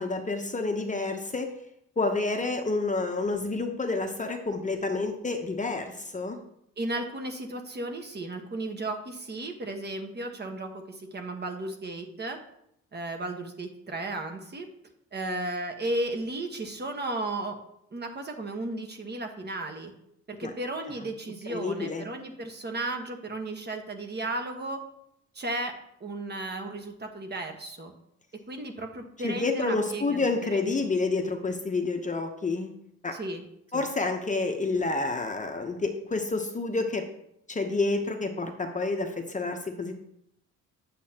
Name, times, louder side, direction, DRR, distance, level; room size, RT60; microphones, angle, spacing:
voice 1, 0.0-1.5 2.0-6.4 20.4-20.5 21.5-22.0 29.2-32.7 33.0-33.1 33.7-37.0 37.5-39.9, left 3 dB, 25° left, 4 dB, 0.9 m, -29 dB
voice 2, 6.8-12.4 12.9-14.7 15.1-17.6 17.9-19.9 20.3-24.8 25.3-25.7 26.0-27.9 28.5-30.2 30.5-30.6 33.1-33.4 33.7-33.8, right 2 dB, 35° right, 4 dB, 1.3 m, -34 dB
8.4 x 7.4 x 2.9 m, 0.75 s
cardioid pair, 90°, 30 cm